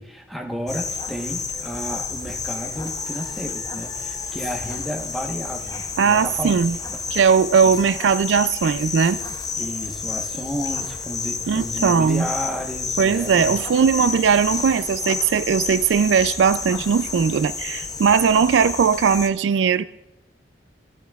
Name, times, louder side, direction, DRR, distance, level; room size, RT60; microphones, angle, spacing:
voice 1, 0.0-6.7 9.6-13.6, equal, ahead, 1.0 m, -32 dB
sound 1, 0.7-19.3, left 5 dB, 20° left, 0.6 m, -30 dB
voice 2, 6.0-6.8 7.1-9.2 11.5-12.3 13.0-19.8, right 6 dB, 85° right, 0.3 m, -19 dB
17.0 x 11.5 x 2.4 m
head